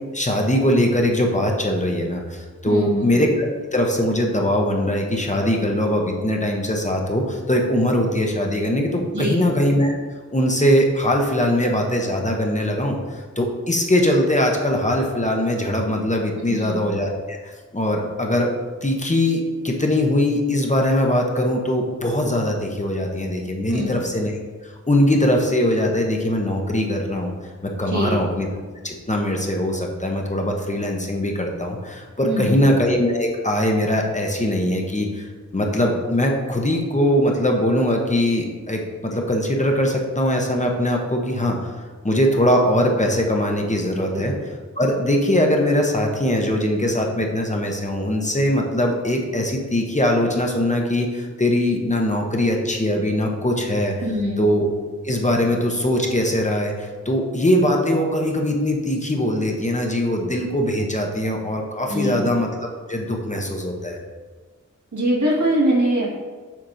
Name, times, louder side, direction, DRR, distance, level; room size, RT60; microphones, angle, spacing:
voice 1, 0.1-9.9 10.3-18.5 18.8-27.3 27.6-28.5 28.8-35.3 35.5-41.7 42.0-44.3 44.8-53.9 54.4-54.7 55.0-62.5 62.9-64.0, left 1 dB, 25° left, 1 dB, 0.8 m, -21 dB
voice 2, 2.7-3.1 9.1-9.4 16.3-16.8 23.7-24.0 27.9-28.2 32.2-32.7 44.1-44.3 54.0-54.4 61.9-62.3 64.9-66.1, equal, 80° right, -5 dB, 1.9 m, -23 dB
7.4 x 5.1 x 2.6 m, 1.4 s
wide cardioid pair, 70°, 30 cm